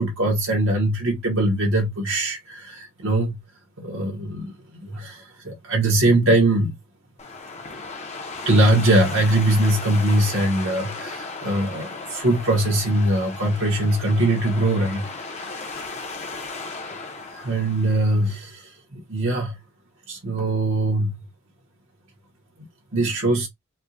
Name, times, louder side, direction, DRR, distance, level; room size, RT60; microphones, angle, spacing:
voice 1, 0.0-3.4 3.8-4.5 4.8-6.7 8.4-15.8 17.3-19.6 20.1-21.1 22.9-23.5, right 1 dB, 60° right, 1.0 m, -22 dB
sound 1, 7.2-18.4, left 3 dB, 30° left, 0.7 m, -36 dB
4.3 x 2.2 x 2.6 m
head